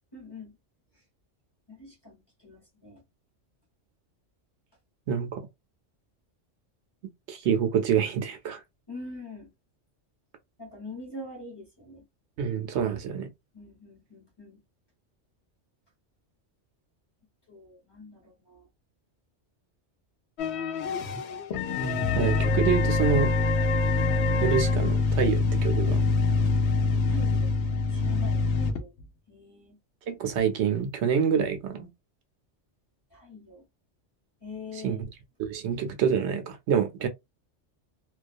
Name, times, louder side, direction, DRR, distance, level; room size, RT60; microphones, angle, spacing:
voice 1, 0.1-0.5 1.7-3.0 8.9-9.5 10.6-12.0 13.5-14.6 17.5-18.7 27.1-27.5 27.9-28.9 29.3-29.8 33.1-33.6 34.4-35.1, left 2 dB, 25° left, 0.9 m, -44 dB
voice 2, 5.1-5.4 7.3-8.6 12.4-13.3 22.1-23.3 24.4-26.0 30.1-31.9 34.7-35.0 35.4-37.1, right 7 dB, 70° right, 0.8 m, -26 dB
sound 1, 20.4-29.0 30.3-30.4 31.1-31.2, left 3 dB, 70° left, 0.8 m, -25 dB
2.3 x 2.2 x 2.5 m
omnidirectional pair, 1.2 m